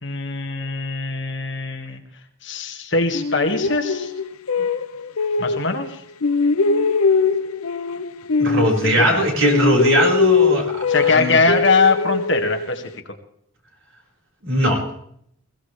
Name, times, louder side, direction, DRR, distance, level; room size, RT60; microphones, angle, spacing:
voice 1, 0.0-2.0 2.4-4.1 5.4-6.0 8.8-9.2 10.9-12.8, left 3 dB, 55° left, 4 dB, 2.0 m, -21 dB
sound 1, 3.1-5.9 6.2-9.2 9.4-12.9, left 4 dB, 90° left, 0.7 m, -21 dB
voice 2, 8.4-11.4 14.4-14.8, right 1 dB, 65° right, 0 dB, 5.3 m, -20 dB
21.5 x 16.5 x 3.4 m, 0.70 s
head